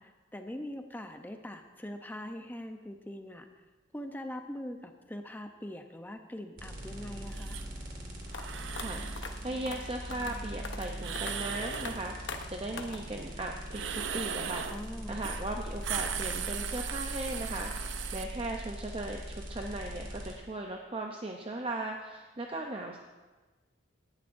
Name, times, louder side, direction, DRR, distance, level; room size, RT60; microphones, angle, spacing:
voice 1, 0.0-3.5 3.9-7.6 14.7-15.2, left 1 dB, 10° left, 5 dB, 0.6 m, -42 dB
sound 1, 6.6-20.3, equal, 45° right, 2.1 m, -41 dB
sound 2, 7.3-7.7 8.3-9.2 11.0-12.0 13.7-14.8 15.2-15.4 15.7-18.2, right 8 dB, 75° right, 0.6 m, -37 dB
sound 3, 8.3-8.4 8.8-8.9 9.2-9.3 9.7-9.8 10.1-10.3 10.6-10.9 11.2-11.3 11.7-11.9 12.3-12.4 12.8-13.0, left 5 dB, 75° left, 0.9 m, -40 dB
voice 2, 8.8-14.7 15.1-23.0, right 2 dB, 30° right, 2 dB, 0.6 m, -38 dB
18.0 x 10.5 x 2.6 m, 1.3 s
head